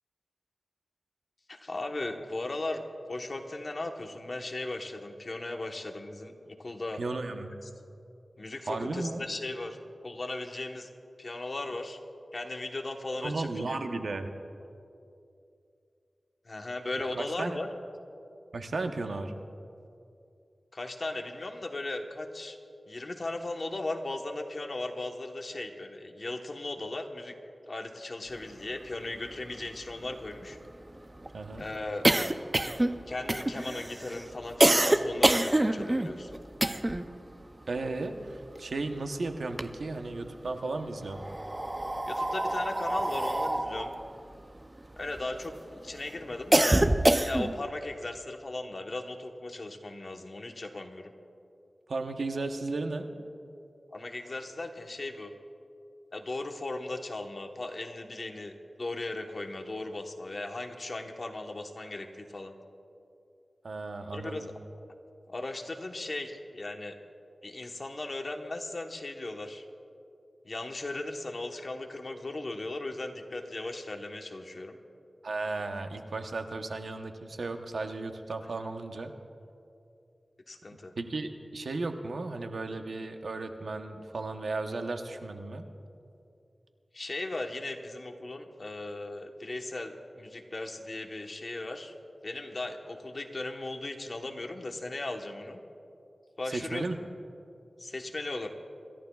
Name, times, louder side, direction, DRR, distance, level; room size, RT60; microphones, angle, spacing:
voice 1, 1.5-2.8 3.1-7.0 8.4-9.8 10.0-10.9 11.2-12.0 12.3-13.8 16.4-17.7 20.7-22.6 22.9-27.3 27.7-30.6 31.5-32.1 33.1-36.4 42.1-43.9 45.0-46.8 47.2-51.1 53.9-55.3 56.1-58.5 58.8-62.5 64.1-64.5 65.3-67.0 67.4-69.7 70.4-74.8 80.5-80.9 86.9-91.9 92.2-95.6 96.4-97.1 97.8-98.5, left 2 dB, 50° left, 3 dB, 1.1 m, -37 dB
voice 2, 7.0-7.6 8.7-9.2 13.2-14.3 17.0-17.6 18.5-19.3 31.3-31.6 37.7-41.2 51.9-53.1 63.6-64.5 75.2-79.1 81.0-85.6 96.5-97.0, right 3 dB, 80° right, 5 dB, 0.9 m, -35 dB
sound 1, 28.9-29.0 29.3-29.4 29.7-37.1 37.4-39.0 39.3-40.3 41.0-45.5 45.9-47.7, right 1 dB, 25° right, 0.5 m, -26 dB
27.0 x 14.0 x 2.4 m, 2.6 s
wide cardioid pair, 80°, 0 cm